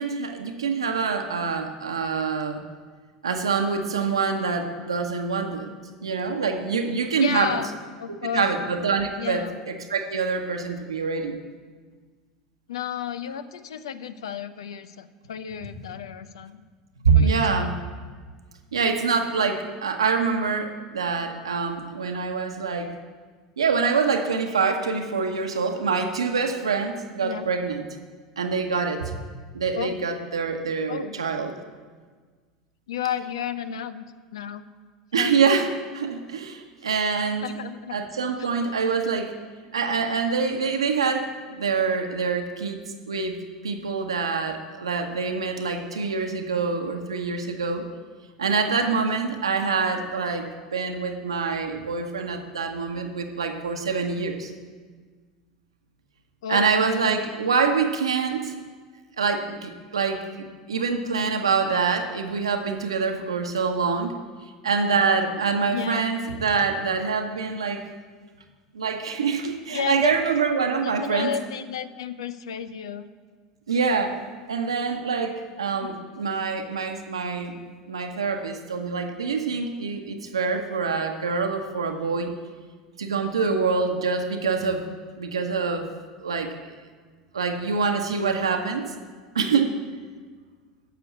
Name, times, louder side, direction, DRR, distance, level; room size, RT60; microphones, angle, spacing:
voice 1, 0.0-2.6 3.2-5.7 6.0-7.6 8.3-11.4 17.0-17.8 18.7-22.9 23.6-27.9 28.4-29.2 29.5-31.5 35.1-37.4 37.9-39.3 39.7-42.8 43.1-47.9 48.4-54.5 56.5-58.5 59.2-64.2 64.6-67.8 68.7-71.3 73.7-74.2 74.5-77.6 77.9-82.3 83.0-84.9 85.2-85.9 86.2-86.7 87.3-88.8 89.3-89.7, right 5 dB, 90° right, 4 dB, 1.1 m, -25 dB
voice 2, 7.2-7.7 8.0-8.6 9.2-9.6 12.7-16.6 17.1-17.8 27.2-27.5 29.7-30.0 30.9-31.1 32.9-34.0 34.3-34.7 35.1-35.3 37.4-38.0 38.4-38.5 56.4-56.8 65.7-66.0 69.7-70.1 70.8-73.1 75.7-75.9, left 8 dB, 80° left, 13 dB, 0.7 m, -32 dB
9.3 x 6.9 x 8.5 m, 1.5 s
hypercardioid pair, 85°, 3 cm